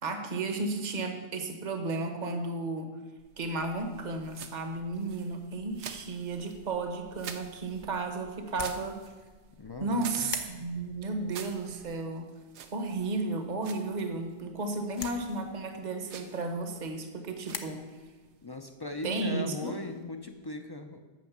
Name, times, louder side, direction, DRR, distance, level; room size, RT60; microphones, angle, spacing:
voice 1, 0.0-3.0 3.4-9.0 9.8-12.3 12.7-17.8 19.0-19.7, right 3 dB, 45° right, 5 dB, 1.1 m, -33 dB
sound 1, 3.2-20.5, right 7 dB, 85° right, 1.0 m, -50 dB
sound 2, 8.4-17.6, left 5 dB, 50° left, 0.8 m, -47 dB
voice 2, 9.6-10.3 18.4-21.0, left 2 dB, 30° left, 6 dB, 0.5 m, -39 dB
9.2 x 6.2 x 7.2 m, 1.3 s
omnidirectional pair, 1.1 m